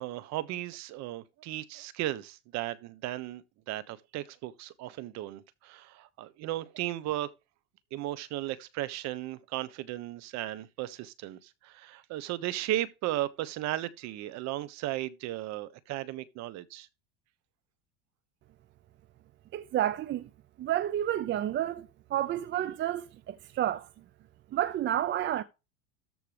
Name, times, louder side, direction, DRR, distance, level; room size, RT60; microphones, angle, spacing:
voice 1, 0.0-7.3 7.9-16.9, right 15 dB, 55° right, 1.2 m, -36 dB
voice 2, 19.5-20.3 20.6-23.9 24.5-25.4, right 12 dB, 35° right, 0.7 m, -30 dB
13.5 x 4.6 x 5.2 m
supercardioid pair, 120°, 33 cm